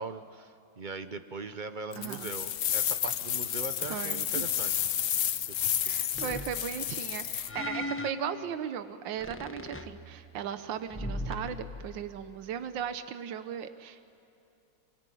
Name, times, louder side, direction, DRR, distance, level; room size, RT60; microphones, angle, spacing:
voice 1, 0.0-4.7 5.6-6.3, right 4 dB, 50° right, 10 dB, 0.6 m, -40 dB
sound 1, 1.9-7.5, left 10 dB, 60° left, 0.9 m, -31 dB
voice 2, 1.9-2.3 3.8-4.4 5.8-14.0, right 9 dB, 80° right, 10 dB, 1.6 m, -37 dB
sound 2, 6.1-7.0 7.5-8.8 9.2-10.5 10.9-12.1, left 1 dB, 10° left, 0.8 m, -39 dB
26.0 x 24.0 x 9.3 m, 2.8 s
omnidirectional pair, 2.0 m